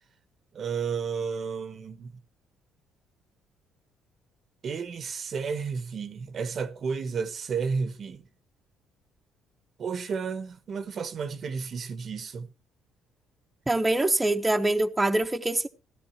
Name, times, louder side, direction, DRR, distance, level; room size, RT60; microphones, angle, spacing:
voice 1, 0.5-2.1 4.6-8.2 9.8-12.5, right 5 dB, 45° right, 1.1 m, -32 dB
voice 2, 13.7-15.7, right 2 dB, 10° right, 1.0 m, -24 dB
16.0 x 12.5 x 3.0 m
cardioid pair, 105°, 0 cm